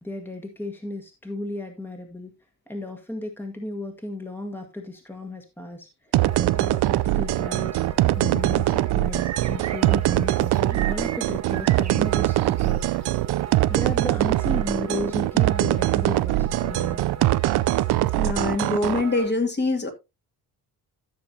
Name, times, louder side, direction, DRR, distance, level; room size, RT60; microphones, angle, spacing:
voice 1, 0.0-2.3 2.7-7.8 8.1-13.1 13.7-17.0, left 1 dB, 5° left, 4 dB, 1.7 m, -34 dB
sound 1, 6.1-19.0, right 16 dB, 90° right, 0.6 m, -22 dB
sound 2, 6.2-19.3, right 8 dB, 45° right, 1.3 m, -38 dB
voice 2, 18.2-19.9, left 2 dB, 25° left, 4 dB, 2.2 m, -24 dB
14.0 x 6.9 x 2.8 m, 0.24 s
cardioid pair, 120°, 38 cm